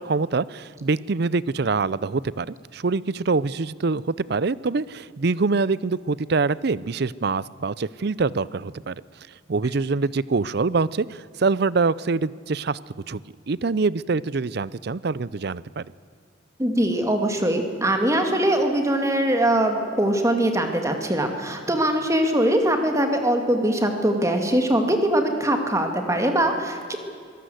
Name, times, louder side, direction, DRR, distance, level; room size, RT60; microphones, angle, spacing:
voice 1, 0.0-8.9 9.5-13.2 13.5-15.9, right 4 dB, 55° right, 20 dB, 0.5 m, -25 dB
voice 2, 16.6-27.0, right 1 dB, 15° right, 5 dB, 2.3 m, -22 dB
24.5 x 18.0 x 7.9 m, 2.2 s
head